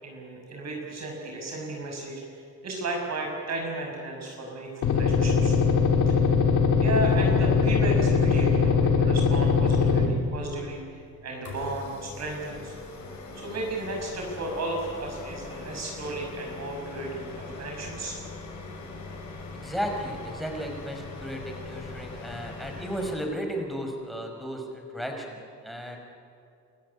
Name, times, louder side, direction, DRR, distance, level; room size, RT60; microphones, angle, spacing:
voice 1, 0.0-2.2 2.6-5.6 6.1-6.2 6.8-12.7 13.3-18.2, right 2 dB, 60° right, 0 dB, 6.4 m, -34 dB
sound 1, 4.8-10.1, left 5 dB, 85° left, 2.7 m, -21 dB
sound 2, 11.4-23.1, left 3 dB, 70° left, 6.9 m, -41 dB
voice 2, 19.5-26.0, equal, ahead, 2 dB, 5.9 m, -34 dB
28.0 x 14.5 x 10.0 m, 2.5 s
cardioid pair, 90°, 30 cm